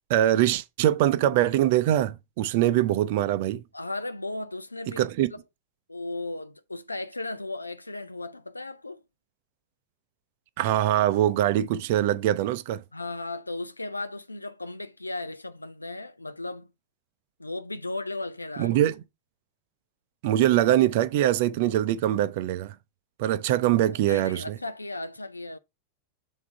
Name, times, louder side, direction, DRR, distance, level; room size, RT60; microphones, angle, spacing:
voice 1, 0.1-3.6 4.9-5.3 10.6-12.8 18.6-19.0 20.2-22.7 23.2-24.6, right 13 dB, 50° right, 0.5 m, -23 dB
voice 2, 3.7-5.4 5.9-9.0 12.9-16.7 17.4-18.8 24.1-25.6, left 2 dB, 85° left, 0.4 m, -36 dB
7.2 x 3.6 x 4.6 m
figure-of-eight pair, 90°, 0 cm